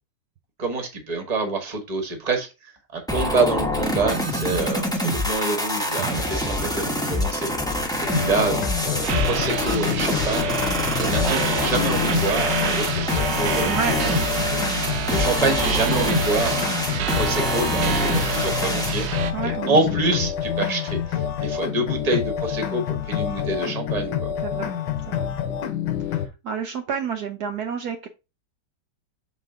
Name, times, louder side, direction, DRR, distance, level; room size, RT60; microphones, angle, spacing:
voice 1, 0.6-2.5 2.9-14.2 14.4-14.7 15.1-16.6 17.0-24.3, right 3 dB, 25° right, 4 dB, 1.2 m, -27 dB
sound 1, 3.1-19.1, left 1 dB, 5° left, 0.8 m, -26 dB
sound 2, 8.0-26.3, left 9 dB, 80° left, 1.5 m, -27 dB
sound 3, 9.0-19.3, right 9 dB, 85° right, 1.4 m, -28 dB
voice 2, 13.6-14.0 14.3-14.5 19.3-19.8 24.4-24.7 25.0-25.3 26.0-28.1, right 6 dB, 70° right, 5 dB, 1.2 m, -30 dB
6.5 x 4.0 x 3.7 m, 0.27 s
omnidirectional pair, 1.9 m